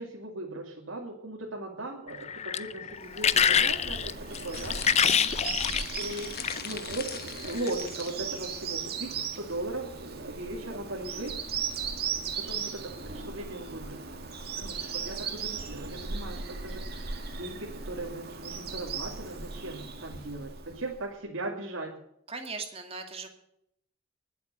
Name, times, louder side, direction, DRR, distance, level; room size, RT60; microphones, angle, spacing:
voice 1, 0.0-4.8 6.0-11.6 12.4-14.0 14.6-22.0, right 2 dB, 75° right, -2 dB, 2.5 m, -38 dB
sound 1, 2.1-6.7 7.5-7.7, left 8 dB, 35° left, 0.5 m, -26 dB
Bird vocalization bird call bird song, 3.0-21.0, right 5 dB, 50° right, 2.1 m, -37 dB
voice 2, 4.4-5.3 6.0-6.1 22.3-23.3, right 4 dB, 30° right, 4 dB, 2.4 m, -41 dB
sound 2, 4.5-8.2, left 8 dB, 50° left, 1.1 m, -41 dB
20.0 x 8.2 x 6.7 m, 0.75 s
head